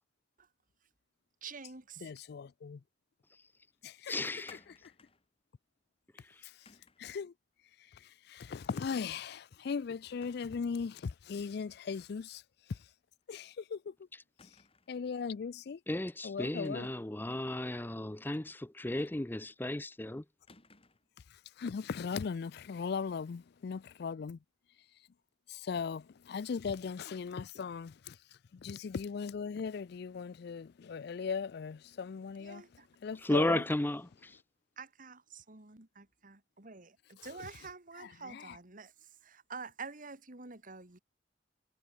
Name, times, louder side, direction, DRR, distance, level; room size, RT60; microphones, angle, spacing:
voice 1, 1.4-2.1 32.4-32.9 33.3-33.4 34.8-38.9 39.2-41.0, right 4 dB, 50° right, 2.4 m, -48 dB
voice 2, 2.0-2.8 3.8-4.9 6.4-6.5 7.0-7.3 7.9-12.4 12.7-12.8 13.3-13.9 14.9-15.8 16.2-16.9 21.6-24.4 25.5-28.2 28.5-32.6 33.0-33.6 37.2-37.5 38.0-38.6, left 5 dB, 60° left, 0.4 m, -38 dB
voice 3, 4.1-4.6 15.9-20.2 33.2-34.4, left 1 dB, 10° left, 0.6 m, -34 dB
sound 1, 4.5-5.3 6.7-7.1 8.7-9.1 9.4-9.5 10.1-10.6 11.0-11.1 12.7-12.9 13.2-13.3 14.4-15.0 16.6-17.1 19.0-19.5 20.5-21.1, left 4 dB, 35° left, 3.1 m, -61 dB
head